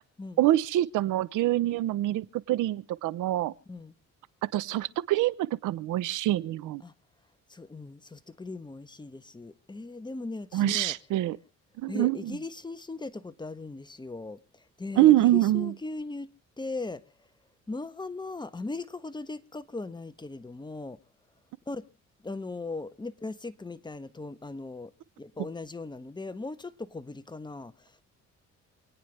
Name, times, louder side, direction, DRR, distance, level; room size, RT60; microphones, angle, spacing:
voice 1, 0.4-3.5 4.5-6.8 10.5-11.4 11.8-12.4 15.0-15.7, right 14 dB, 85° right, 0.9 m, -25 dB
voice 2, 7.5-11.0 11.9-16.3 16.6-17.0 17.7-21.0 21.7-21.9 22.2-24.9 25.2-28.0, left 3 dB, 15° left, 1.2 m, -38 dB
28.0 x 9.6 x 3.3 m
cardioid pair, 90°, 30 cm